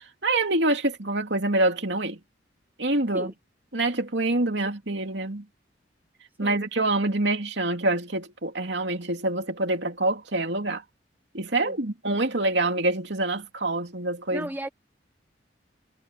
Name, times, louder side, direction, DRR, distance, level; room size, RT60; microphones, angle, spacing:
voice 1, 0.2-2.2 2.8-3.3 3.7-5.4 6.4-10.8 11.3-14.5, right 2 dB, 65° right, 2.8 m, -26 dB
voice 2, 14.3-14.7, right 1 dB, 10° right, 1.2 m, -34 dB
head